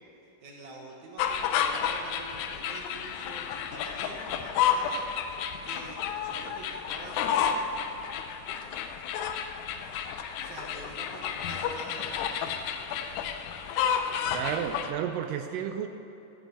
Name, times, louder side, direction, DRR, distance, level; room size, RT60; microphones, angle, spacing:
voice 1, 0.4-5.0 5.6-7.8 10.4-12.5, right 2 dB, 65° right, 0 dB, 2.4 m, -46 dB
sound 1, 1.2-14.9, left 8 dB, 75° left, 1.9 m, -31 dB
voice 2, 14.3-15.9, right 9 dB, 80° right, 7 dB, 2.2 m, -32 dB
12.5 x 9.2 x 8.3 m, 2.9 s
omnidirectional pair, 4.0 m